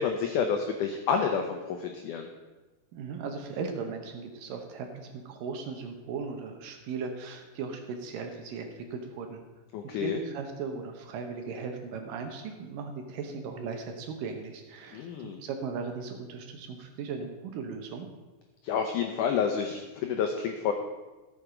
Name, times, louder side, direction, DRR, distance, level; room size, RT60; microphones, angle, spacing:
voice 1, 0.0-2.3 9.7-10.2 14.9-15.4 18.6-20.7, left 6 dB, 85° left, 4 dB, 1.8 m, -29 dB
voice 2, 2.9-9.4 9.8-18.1, right 5 dB, 70° right, 5 dB, 2.3 m, -37 dB
14.0 x 6.5 x 5.0 m, 1.2 s
omnidirectional pair, 4.5 m